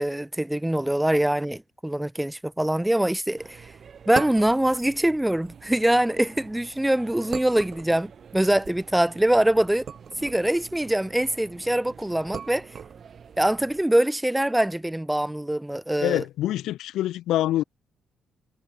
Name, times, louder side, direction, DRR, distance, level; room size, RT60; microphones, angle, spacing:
voice 1, 0.0-3.7 4.1-9.9 10.2-12.7 13.4-16.2, right 1 dB, 5° right, 0.4 m, -23 dB
sound 1, 3.4-13.8, right 7 dB, 50° right, 2.7 m, -41 dB
voice 2, 16.0-17.6, left 14 dB, 85° left, 1.9 m, -25 dB
cardioid pair, 90°, 0 cm